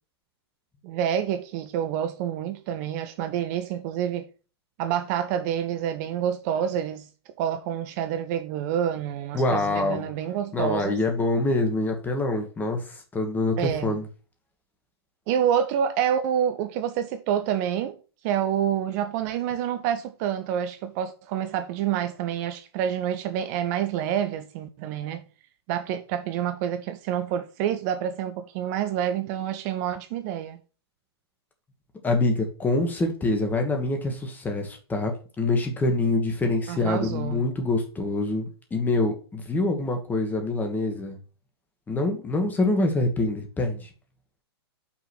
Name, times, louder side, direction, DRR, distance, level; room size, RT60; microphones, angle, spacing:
voice 1, 0.8-4.3 4.8-7.1 7.4-11.0 13.6-13.9 15.3-17.9 18.2-25.2 25.7-30.6 36.7-37.5, right 9 dB, 40° right, 0.6 m, -28 dB
voice 2, 9.3-10.1 10.5-14.1 32.0-41.2 41.9-43.9, left 2 dB, 15° left, 1.6 m, -25 dB
5.9 x 3.8 x 6.0 m
hypercardioid pair, 115°, 14 cm